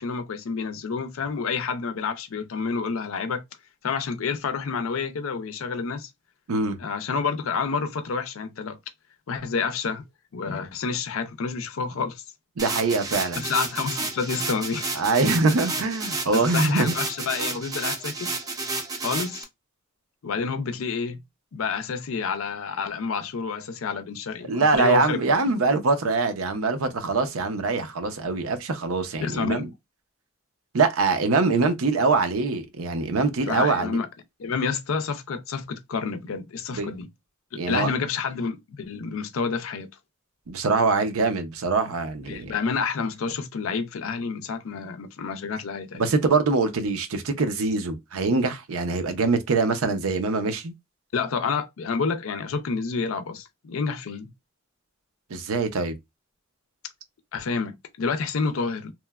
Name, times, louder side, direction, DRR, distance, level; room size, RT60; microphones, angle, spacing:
voice 1, 0.0-3.4 3.8-6.1 6.8-8.8 9.3-10.0 10.3-12.2 13.4-14.9 16.3-18.3 19.0-19.4 20.2-21.2 21.5-25.2 29.2-29.7 33.5-34.1 34.4-37.1 37.7-39.9 42.3-46.0 51.1-54.3 57.3-58.9, left 5 dB, 75° left, 0.5 m, -29 dB
sound 1, 12.6-19.4, right 3 dB, 15° right, 0.4 m, -31 dB
voice 2, 12.6-13.4 15.0-16.9 24.5-29.7 30.7-34.0 36.7-36.9 37.6-37.9 40.5-42.5 45.9-50.7 55.3-56.0, right 3 dB, 90° right, 0.6 m, -23 dB
3.0 x 2.1 x 2.2 m
head